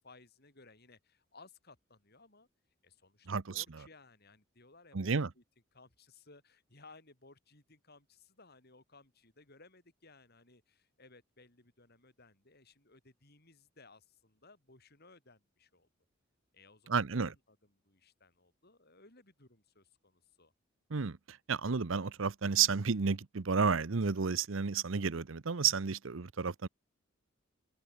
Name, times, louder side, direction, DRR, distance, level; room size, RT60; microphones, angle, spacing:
voice 1, 0.0-2.5 2.8-5.4 5.7-15.9 16.5-20.5, left 3 dB, 50° left, 6.0 m, -60 dB
voice 2, 3.3-3.6 4.9-5.3 16.9-17.3 20.9-26.7, right 5 dB, 70° right, 0.8 m, -31 dB
open air
head